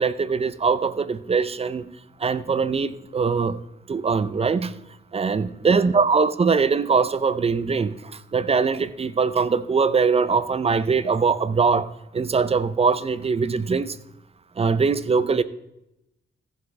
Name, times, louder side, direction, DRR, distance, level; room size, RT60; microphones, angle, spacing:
voice 1, 0.0-1.9 2.2-3.6 3.9-4.8 5.1-14.0 14.6-15.4, right 5 dB, 30° right, 0.5 m, -22 dB
15.0 x 7.3 x 3.3 m
wide cardioid pair, 120°, 20 cm